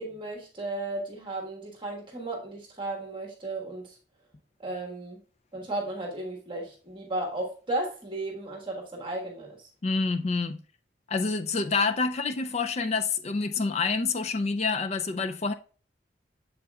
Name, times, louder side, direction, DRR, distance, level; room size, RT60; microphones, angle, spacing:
voice 1, 0.0-4.0 4.6-5.2 5.5-9.7, right 2 dB, 25° right, 1.4 m, -34 dB
voice 2, 9.8-10.6 11.1-15.5, left 4 dB, 35° left, 0.4 m, -27 dB
7.5 x 7.3 x 2.3 m
head